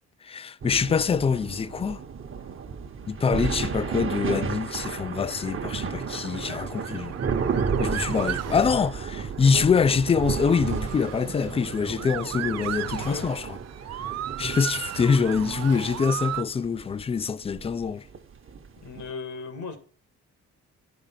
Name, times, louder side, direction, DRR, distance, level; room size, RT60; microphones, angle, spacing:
voice 1, 0.2-2.0 3.1-7.2 7.8-13.5 14.4-18.0, left 6 dB, 20° left, 0.3 m, -25 dB
sound 1, 0.6-19.1, right 6 dB, 45° right, 1.0 m, -33 dB
Motor vehicle (road) / Siren, 5.3-16.4, right 12 dB, 60° right, 0.5 m, -36 dB
sound 2, 5.8-15.8, right 7 dB, 85° right, 1.1 m, -46 dB
voice 2, 12.9-13.3 18.8-19.8, left 4 dB, 80° left, 1.9 m, -37 dB
10.5 x 5.0 x 5.7 m
cardioid pair, 90°, 30 cm